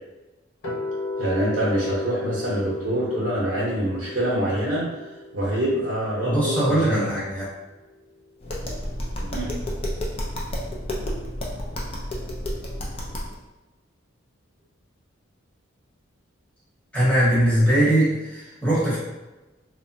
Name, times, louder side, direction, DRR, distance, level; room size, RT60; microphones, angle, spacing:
sound 1, 0.6-6.7, left 3 dB, 80° left, 0.6 m, -34 dB
voice 1, 1.2-4.9 5.3-7.1 9.2-9.5, right 1 dB, 60° right, -8 dB, 0.7 m, -25 dB
voice 2, 6.2-7.5 16.9-19.0, right 1 dB, 5° left, -10 dB, 1.0 m, -21 dB
Tap, 8.4-13.3, equal, 30° left, 0.4 m, -30 dB
3.0 x 2.1 x 2.6 m, 1.1 s
head